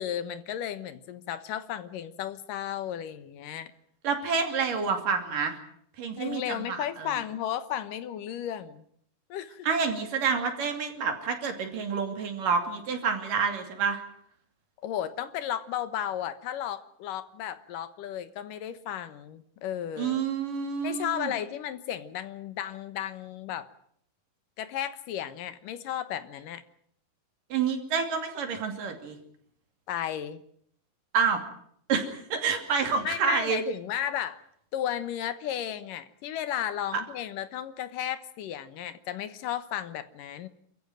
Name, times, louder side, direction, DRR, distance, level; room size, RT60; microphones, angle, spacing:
voice 1, 0.0-3.7 6.2-8.8 9.3-9.7 14.8-20.2 20.8-23.7 24.6-26.6 29.9-30.4 33.0-34.4 34.7-40.5, left 10 dB, 75° left, 12 dB, 2.7 m, -34 dB
voice 2, 4.0-5.6 6.0-7.1 9.6-14.0 20.0-21.3 27.5-29.2 31.1-31.4 31.9-33.6, right 5 dB, 70° right, 6 dB, 4.2 m, -28 dB
28.0 x 14.5 x 9.2 m, 0.67 s
omnidirectional pair, 4.1 m